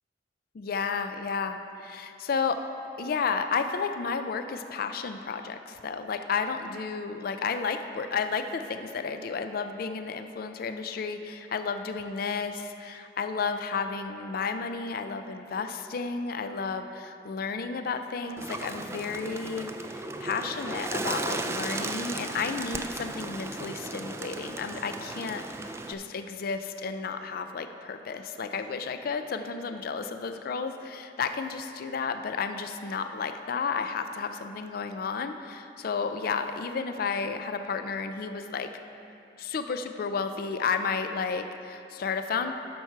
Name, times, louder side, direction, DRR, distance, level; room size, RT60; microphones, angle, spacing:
voice 1, 0.6-2.6 3.0-38.7 39.4-42.5, left 5 dB, 55° left, 8 dB, 0.4 m, -32 dB
Bird, 18.4-25.9, right 2 dB, 15° right, 0.3 m, -35 dB
12.0 x 4.6 x 5.6 m, 2.7 s
head